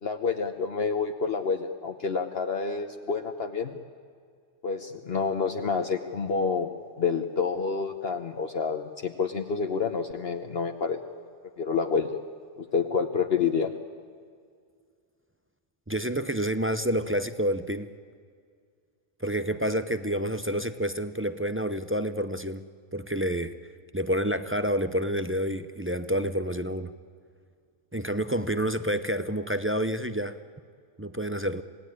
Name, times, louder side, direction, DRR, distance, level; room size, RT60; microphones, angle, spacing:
voice 1, 0.0-3.7 4.6-6.7 7.0-11.0 11.6-12.2 12.6-13.7, left 5 dB, 55° left, 5 dB, 1.2 m, -28 dB
voice 2, 15.9-17.9 19.2-22.7 22.9-23.5 23.9-26.9 27.9-30.4 31.0-31.6, equal, 15° right, 10 dB, 0.5 m, -28 dB
26.5 x 18.0 x 9.9 m, 2.1 s
omnidirectional pair, 1.3 m